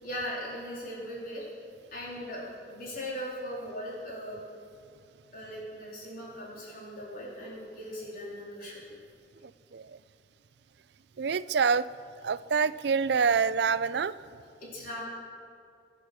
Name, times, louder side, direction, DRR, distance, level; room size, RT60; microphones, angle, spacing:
voice 1, 0.0-1.4 1.9-4.4 5.3-8.8 14.6-15.1, equal, 50° left, -5 dB, 3.9 m, -39 dB
voice 2, 11.2-11.9 12.2-14.1, right 5 dB, 65° right, 16 dB, 0.5 m, -26 dB
23.5 x 9.8 x 6.2 m, 2.4 s
head